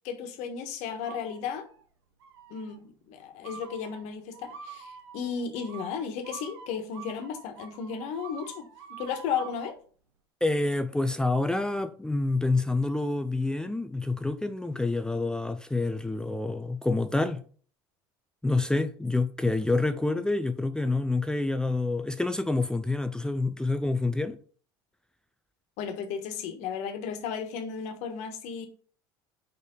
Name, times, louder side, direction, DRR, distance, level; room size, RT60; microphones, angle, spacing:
voice 1, 0.0-1.7 2.5-8.6 8.9-9.8 25.8-28.7, left 7 dB, 65° left, 1.4 m, -34 dB
sound 1, 1.1-1.8 2.2-2.7 3.4-9.7, right 7 dB, 85° right, 1.1 m, -46 dB
voice 2, 10.4-17.4 18.4-24.4, left 2 dB, 5° left, 0.5 m, -27 dB
5.1 x 4.4 x 5.3 m
hypercardioid pair, 85°, 13 cm